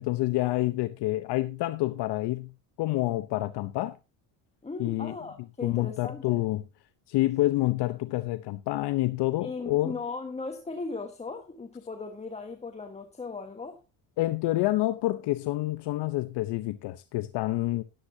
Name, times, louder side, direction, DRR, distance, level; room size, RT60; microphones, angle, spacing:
voice 1, 0.0-2.5 2.8-4.0 4.8-5.1 5.6-6.6 7.1-10.0 14.2-17.8, left 17 dB, 60° left, 0.8 m, -28 dB
voice 2, 4.6-6.4 9.4-13.8, left 4 dB, 15° left, 1.4 m, -37 dB
13.0 x 11.5 x 2.7 m
cardioid pair, 130°, 46 cm